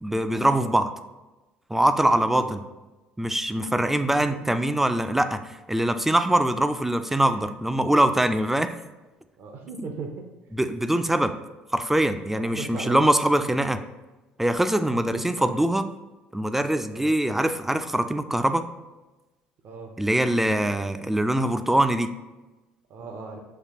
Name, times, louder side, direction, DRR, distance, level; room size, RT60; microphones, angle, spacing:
voice 1, 0.0-0.9 1.7-2.6 3.2-5.4 5.7-8.7 9.8-9.9 10.5-11.3 11.7-13.8 14.4-15.8 16.3-18.6 20.0-22.1, right 1 dB, 5° right, 9 dB, 0.3 m, -23 dB
voice 2, 3.6-4.4 9.4-10.2 12.4-13.0 15.1-15.6 16.9-17.1 19.6-19.9 20.3-20.9 22.9-23.4, right 4 dB, 50° right, 4 dB, 0.6 m, -38 dB
5.8 x 2.8 x 2.8 m, 1.1 s
figure-of-eight pair, 55°, 5 cm